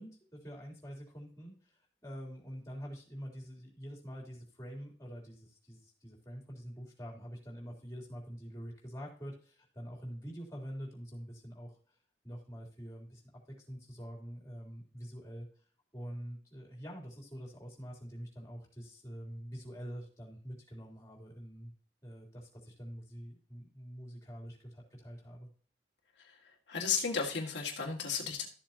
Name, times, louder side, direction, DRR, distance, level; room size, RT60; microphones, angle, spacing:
voice 1, 0.0-11.9 12.2-13.2 13.6-15.5 15.9-21.7 22.0-25.5, equal, 15° left, -2 dB, 3.4 m, -46 dB
voice 2, 26.7-28.5, left 5 dB, 80° left, -1 dB, 2.1 m, -34 dB
13.5 x 7.4 x 2.9 m, 0.42 s
head